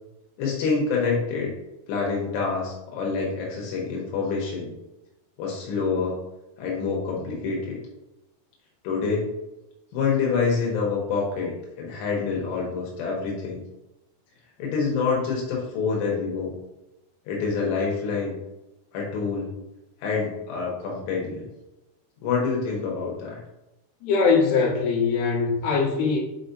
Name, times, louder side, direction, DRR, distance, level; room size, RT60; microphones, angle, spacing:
voice 1, 0.4-1.5 1.9-4.7 5.4-6.1 6.6-7.8 8.8-9.3 9.9-13.6 14.6-16.5 17.3-18.4 18.9-19.6 20.0-21.5 22.2-23.4, left 5 dB, 85° left, -2 dB, 3.2 m, -26 dB
voice 2, 24.0-26.2, left 5 dB, 70° left, -4 dB, 3.3 m, -21 dB
8.3 x 4.4 x 2.6 m, 0.97 s
omnidirectional pair, 4.8 m